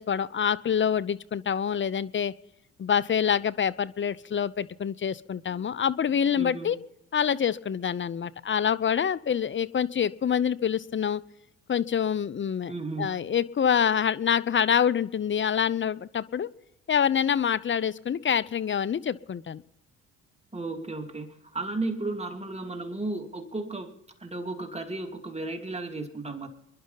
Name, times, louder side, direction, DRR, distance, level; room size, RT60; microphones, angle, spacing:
voice 1, 0.0-2.3 2.8-6.8 7.1-11.2 11.7-12.7 13.0-16.5 16.9-19.6, left 8 dB, 35° left, 16 dB, 0.7 m, -26 dB
voice 2, 6.3-6.8 12.7-13.1 20.5-23.9 24.2-26.5, right 2 dB, 15° right, 4 dB, 2.7 m, -34 dB
27.0 x 11.0 x 4.0 m, 0.91 s
hypercardioid pair, 50°, 36 cm